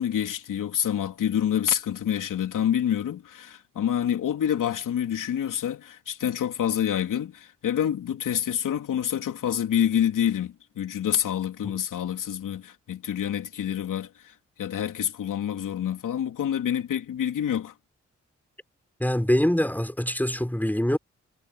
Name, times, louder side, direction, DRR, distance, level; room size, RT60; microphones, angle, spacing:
voice 1, 0.0-17.7, left 9 dB, 85° left, 3.2 m, -27 dB
voice 2, 19.0-21.0, equal, 5° left, 4.8 m, -24 dB
supercardioid pair, 45°, 31 cm